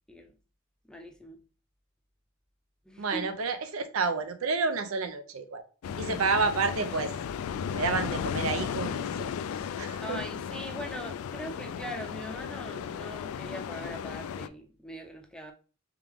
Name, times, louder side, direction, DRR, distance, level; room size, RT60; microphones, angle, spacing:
voice 1, 0.9-1.4 2.8-3.3 10.0-15.5, equal, 5° left, 0.5 m, -41 dB
voice 2, 3.0-5.6 6.0-7.1 7.7-9.3 9.8-10.2, right 4 dB, 80° right, 0.6 m, -30 dB
sound 1, 5.8-14.5, left 7 dB, 80° left, 0.3 m, -35 dB
3.5 x 3.5 x 3.4 m
head